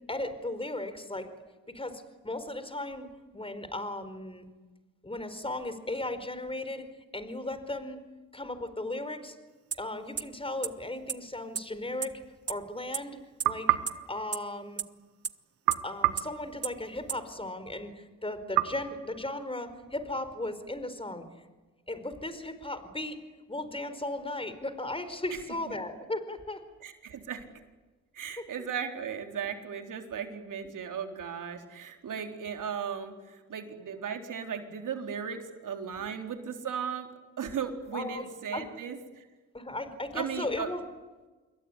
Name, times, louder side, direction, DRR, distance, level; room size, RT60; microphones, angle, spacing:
voice 1, 0.1-1.3 1.7-3.1 3.3-4.5 5.0-6.9 7.1-8.0 8.3-9.3 9.7-12.2 12.5-13.2 13.4-13.8 14.1-14.8 15.8-21.3 21.9-23.2 23.5-26.6 28.4-28.5 37.9-38.3 38.5-38.7 39.5-40.8, left 2 dB, 15° left, 11 dB, 4.7 m, -36 dB
sound 1, 9.7-9.8 10.2-10.3 10.6-10.7 11.1-11.2 11.6-11.7 12.0-12.1 12.5-12.6 12.9-13.0 13.4-13.5 13.9-14.0 14.3-14.4 14.8-14.9 15.2-15.3 15.7-15.8 16.2-16.3 16.6-16.7 17.1-17.2, right 7 dB, 40° right, 1.2 m, -30 dB
sound 2, 13.4-15.0 15.7-17.3 18.6-19.9, right 16 dB, 85° right, 1.2 m, -31 dB
voice 2, 26.8-27.5 28.1-37.1 37.4-39.3 40.1-40.7, right 7 dB, 60° right, 5 dB, 4.0 m, -36 dB
27.5 x 22.0 x 9.8 m, 1.2 s
hypercardioid pair, 50°, 35 cm